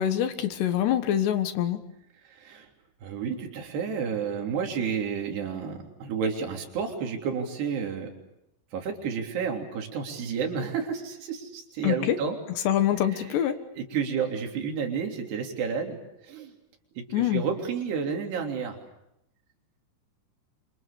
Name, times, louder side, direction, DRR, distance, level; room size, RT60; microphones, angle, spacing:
voice 1, 0.0-1.8 11.8-12.2 12.6-13.6 17.1-17.4, left 11 dB, 70° left, 9 dB, 3.2 m, -25 dB
voice 2, 2.3-2.7 3.0-8.1 8.7-12.4 13.1-13.3 13.8-16.0 16.3-16.5 17.0-18.8, right 6 dB, 60° right, 3 dB, 5.2 m, -31 dB
29.0 x 26.5 x 6.8 m, 0.82 s
omnidirectional pair, 5.7 m